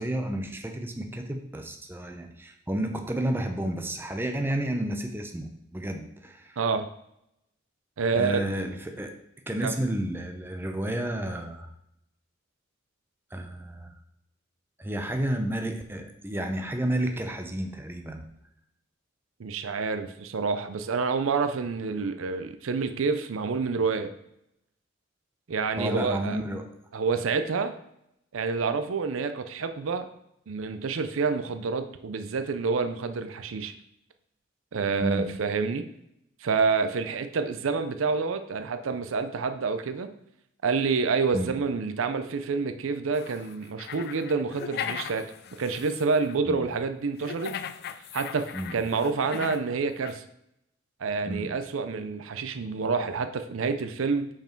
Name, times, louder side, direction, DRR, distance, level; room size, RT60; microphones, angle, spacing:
voice 1, 0.0-6.6 8.1-9.1 9.5-11.7 13.3-13.9 14.8-18.3 25.8-26.7 35.0-35.3 41.3-41.5 46.5-46.6 48.5-48.7 51.2-51.5, right 1 dB, 10° right, 4 dB, 0.6 m, -31 dB
voice 2, 6.6-6.9 8.0-8.4 9.6-9.7 19.4-24.1 25.5-26.4 26.9-27.7 28.3-30.1 30.5-33.7 34.7-35.8 36.4-40.1 40.6-45.3 45.6-47.5 48.1-48.5 48.7-50.2 51.0-54.3, right 4 dB, 85° right, 10 dB, 0.5 m, -28 dB
sound 1, 43.1-46.3 47.2-49.7 50.0-50.2, left 8 dB, 55° left, 0.3 m, -38 dB
5.5 x 4.8 x 4.4 m, 0.80 s
head